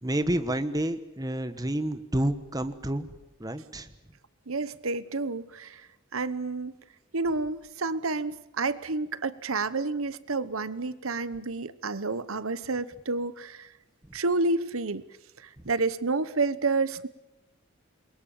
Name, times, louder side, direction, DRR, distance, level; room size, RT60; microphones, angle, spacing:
voice 1, 0.0-3.1 3.4-3.9 14.0-14.1 15.6-15.7, right 1 dB, 15° right, 10 dB, 1.2 m, -29 dB
voice 2, 4.5-6.7 7.1-13.7 14.1-15.0 15.4-17.1, right 3 dB, 85° right, 16 dB, 1.1 m, -30 dB
28.0 x 22.5 x 7.2 m, 0.93 s
head